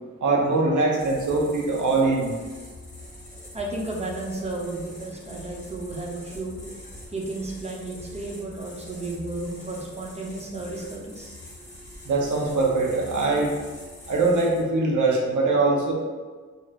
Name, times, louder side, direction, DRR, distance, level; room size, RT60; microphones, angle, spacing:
voice 1, 0.2-2.3 12.1-13.5 14.1-15.9, right 3 dB, 90° right, -1 dB, 0.6 m, -22 dB
sound 1, 1.0-14.6, left 1 dB, 25° left, 0.7 m, -44 dB
voice 2, 3.5-11.4, right 2 dB, 20° right, -2 dB, 0.4 m, -33 dB
2.5 x 2.2 x 3.2 m, 1.4 s
wide cardioid pair, 165°, 29 cm